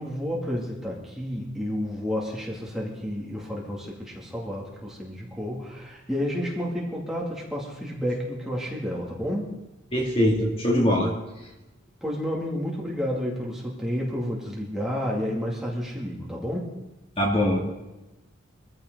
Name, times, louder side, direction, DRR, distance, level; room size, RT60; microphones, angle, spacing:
voice 1, 0.0-9.5 12.0-16.7, equal, ahead, -4 dB, 2.6 m, -30 dB
voice 2, 9.9-11.1 17.2-17.6, equal, 25° left, -1 dB, 2.6 m, -22 dB
23.5 x 15.0 x 4.0 m, 1.0 s
head